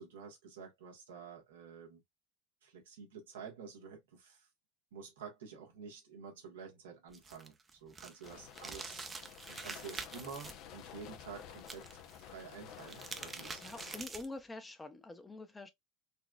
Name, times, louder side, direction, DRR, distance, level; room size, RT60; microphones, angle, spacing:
voice 1, 0.0-2.0 2.6-4.5 4.9-7.5 7.8-9.1 9.5-13.7, right 6 dB, 85° right, 1.3 m, -50 dB
sound 1, 7.1-10.5 11.6-12.2 12.7-14.4, right 4 dB, 25° right, 0.7 m, -46 dB
sound 2, 8.2-14.0, left 9 dB, 55° left, 0.6 m, -52 dB
voice 2, 13.6-15.7, left 2 dB, 15° left, 0.7 m, -46 dB
4.1 x 2.3 x 2.3 m
hypercardioid pair, 85°, 0 cm